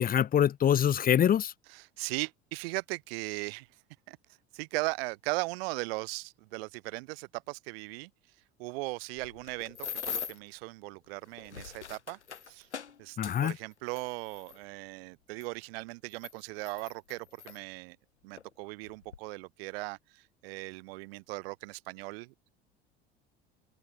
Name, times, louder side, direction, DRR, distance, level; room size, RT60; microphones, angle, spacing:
voice 1, 0.0-1.5 13.2-13.5, left 9 dB, 25° left, 0.9 m, -24 dB
voice 2, 1.7-3.7 4.1-4.2 4.5-8.1 8.6-12.2 12.5-12.7 13.0-18.0 18.2-22.5, right 25 dB, 60° right, 1.9 m, -38 dB
sound 1, 9.2-10.5 11.3-14.6 15.4-15.5 16.1-17.6 18.4-18.5 18.8-19.2, left 7 dB, 80° left, 2.8 m, -41 dB
open air
figure-of-eight pair, 70°, 34 cm